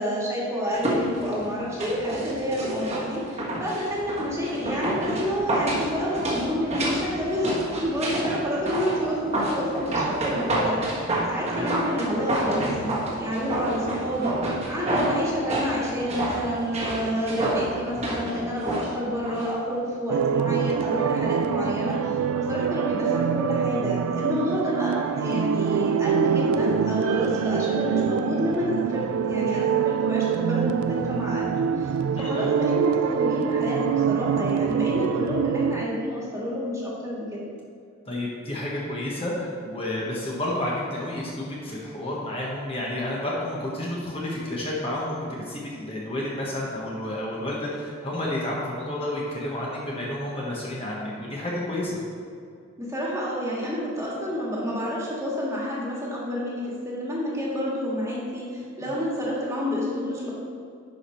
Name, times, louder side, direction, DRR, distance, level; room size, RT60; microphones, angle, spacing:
voice 1, 0.0-14.4 14.7-22.0 22.3-37.4 52.8-60.3, equal, 15° right, -5 dB, 1.8 m, -29 dB
sound 1, 0.7-19.5 19.8-19.9, right 1 dB, 30° right, 1.5 m, -29 dB
sound 2, 20.1-35.9, right 8 dB, 85° right, 0.3 m, -25 dB
voice 2, 32.1-32.5 38.1-45.1 45.5-51.9 58.8-58.9, left 1 dB, 25° left, -5 dB, 1.2 m, -30 dB
10.5 x 5.0 x 4.4 m, 2.3 s
head